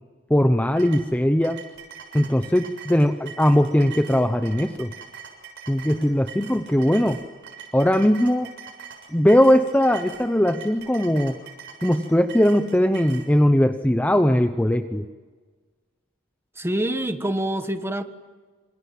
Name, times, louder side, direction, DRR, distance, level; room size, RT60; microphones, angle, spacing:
voice 1, 0.3-1.6 2.1-4.9 5.7-7.2 7.7-8.5 9.1-11.4 11.8-15.0, equal, 10° left, 8 dB, 0.8 m, -20 dB
sound 1, 0.8-13.3, right 7 dB, 60° right, 6.9 m, -42 dB
voice 2, 16.6-18.0, right 1 dB, 10° right, 8 dB, 1.5 m, -26 dB
27.5 x 27.0 x 7.6 m, 1.4 s
head